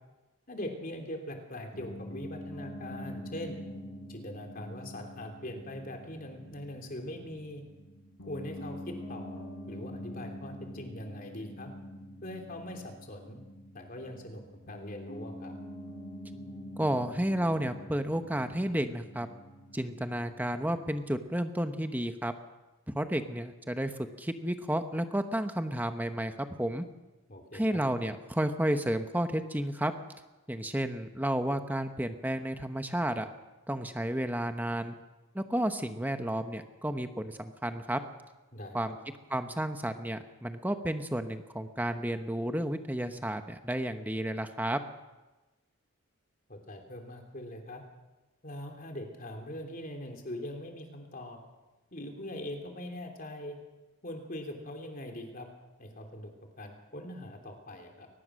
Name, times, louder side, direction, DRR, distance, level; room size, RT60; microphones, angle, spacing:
voice 1, 0.5-3.6 4.1-7.6 8.3-11.7 12.2-13.4 13.7-15.6 27.3-27.8 38.5-38.9 46.5-47.8 48.4-51.4 51.9-53.6 54.0-55.5 55.8-56.3 56.6-58.1, left 1 dB, 40° left, 3 dB, 3.3 m, -42 dB
Piano, 1.7-21.1, left 1 dB, 75° left, 6.1 m, -45 dB
voice 2, 16.8-19.3 19.7-22.3 22.9-26.9 27.5-29.9 30.5-33.3 33.7-34.9 35.3-38.0 38.7-39.0 39.3-44.8, right 1 dB, 10° right, 7 dB, 0.9 m, -32 dB
22.5 x 19.5 x 6.4 m, 1.1 s
head